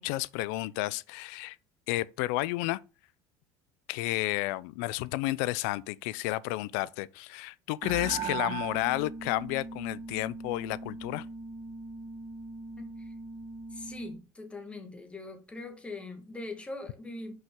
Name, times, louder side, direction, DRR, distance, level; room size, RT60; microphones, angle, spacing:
voice 1, 0.0-1.6 1.9-2.8 3.9-11.3, left 18 dB, 85° left, 0.4 m, -31 dB
sound 1, 7.8-14.2, right 5 dB, 50° right, 1.7 m, -39 dB
voice 2, 12.8-13.1 13.7-17.3, left 2 dB, 15° left, 1.6 m, -42 dB
5.7 x 5.5 x 3.6 m
cardioid pair, 120°, 9 cm